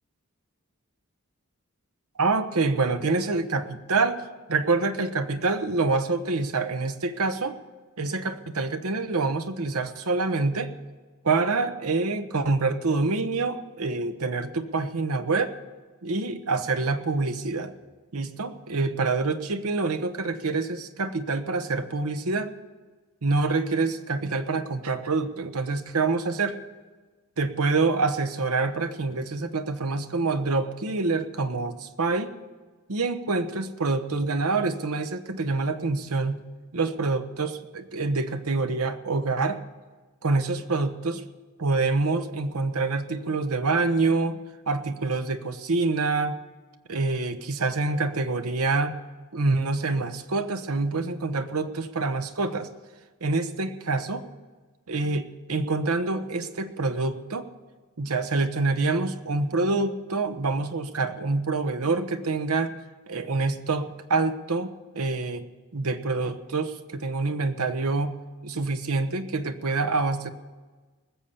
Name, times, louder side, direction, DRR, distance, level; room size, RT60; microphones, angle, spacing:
voice 1, 2.2-4.2 4.5-7.6 8.0-10.7 11.2-15.5 16.0-17.7 18.1-22.5 23.2-26.6 27.4-32.3 32.9-36.4 36.7-39.6 40.2-41.2 41.6-44.4 44.7-46.4 46.9-48.9 49.3-52.7 53.2-54.2 54.9-57.5 58.0-62.7 63.1-65.4 65.7-68.1 68.4-70.3, right 3 dB, 85° right, 9 dB, 1.0 m, -26 dB
20.0 x 7.2 x 6.8 m, 1.3 s
head